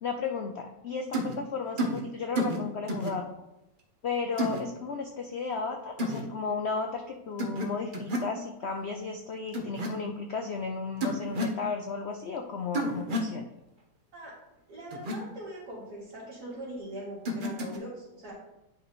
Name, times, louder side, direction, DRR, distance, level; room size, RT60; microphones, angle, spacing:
voice 1, 0.0-3.3 4.0-13.4, left 4 dB, 75° left, 4 dB, 0.6 m, -34 dB
sound 1, 1.1-1.3 1.8-2.0 2.3-2.6 2.9-3.1 4.4-4.6 6.0-6.2 7.4-7.7 7.9-8.3 9.5-9.9 11.0-11.6 12.7-13.3 14.9-15.1 17.2-17.8, equal, 35° right, 0.9 m, -30 dB
voice 2, 14.7-18.3, right 1 dB, 65° right, -10 dB, 3.1 m, -41 dB
10.0 x 5.3 x 3.0 m, 0.91 s
omnidirectional pair, 1.8 m